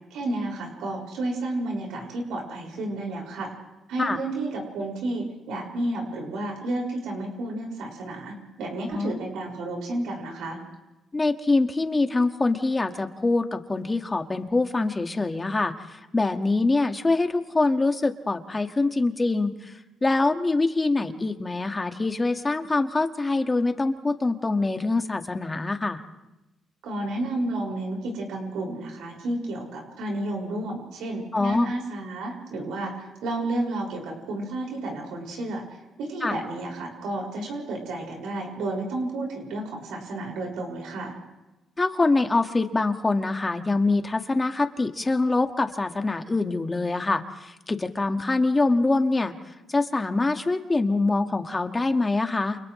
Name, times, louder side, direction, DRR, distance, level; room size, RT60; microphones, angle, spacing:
voice 1, 0.1-3.5 3.9-10.6 26.8-35.6 36.0-41.1, right 2 dB, 85° right, 0 dB, 5.9 m, -31 dB
voice 2, 11.1-26.0 31.3-31.7 36.2-36.4 41.8-49.3 49.7-52.6, left 3 dB, 20° left, 6 dB, 1.8 m, -24 dB
30.0 x 28.5 x 3.2 m, 1.0 s
cardioid pair, 90°, 0 cm